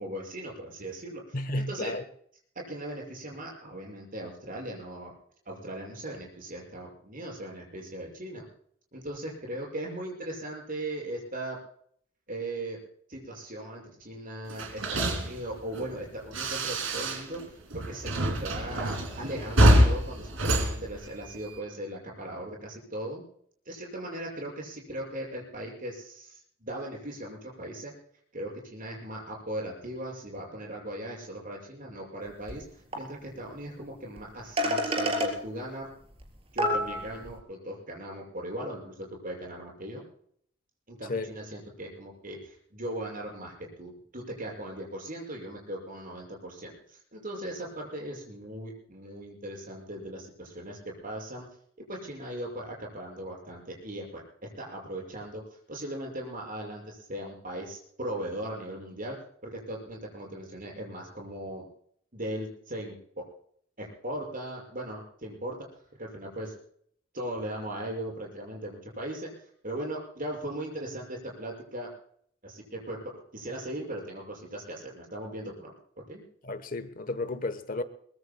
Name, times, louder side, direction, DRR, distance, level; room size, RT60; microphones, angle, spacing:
voice 1, 0.0-2.0 2.5-5.1 5.4-8.4 8.9-11.6 12.3-12.8 13.1-18.1 18.4-23.2 23.6-27.9 28.3-35.9 36.5-40.0 40.9-51.5 51.9-59.2 59.4-61.7 62.1-63.2 63.8-65.6 66.0-66.5 67.1-71.9 72.4-75.7 76.1-76.2, right 1 dB, 45° right, 6.5 m, -38 dB
voice 2, 1.3-2.0 41.1-41.3 76.4-77.8, left 2 dB, 45° left, 1.0 m, -32 dB
sound 1, 14.5-17.4 17.7-21.6, right 1 dB, 90° right, 2.8 m, -26 dB
sound 2, 32.5-32.6 32.9-33.0 34.2-34.3 34.6-35.3 36.2-36.3 36.6-37.3, equal, 30° right, 3.8 m, -27 dB
23.0 x 22.0 x 2.3 m
head